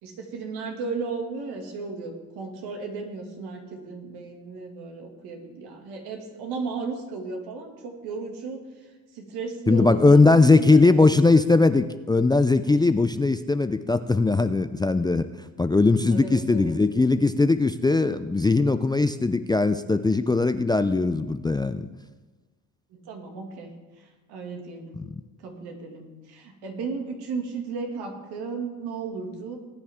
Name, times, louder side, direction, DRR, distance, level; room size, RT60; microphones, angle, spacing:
voice 1, 0.0-8.6 9.1-10.9 16.1-16.8 22.9-25.0 25.4-29.6, right 4 dB, 75° right, 2 dB, 2.4 m, -35 dB
voice 2, 9.7-15.3 15.6-21.9 25.0-25.1, left 3 dB, 10° left, 11 dB, 0.4 m, -20 dB
19.0 x 9.2 x 3.7 m, 1.2 s
supercardioid pair, 80°, 39 cm